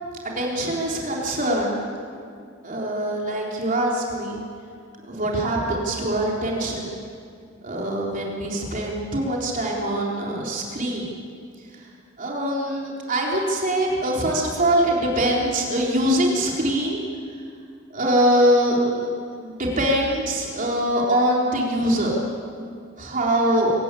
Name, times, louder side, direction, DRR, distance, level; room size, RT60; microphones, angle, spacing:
voice 1, 0.2-1.8 2.6-4.4 5.0-7.0 7.6-11.0 12.2-17.0 17.9-19.1 19.4-22.2 23.0-23.7, right 1 dB, 45° right, -3 dB, 3.8 m, -23 dB
26.5 x 17.0 x 8.5 m, 2.3 s
head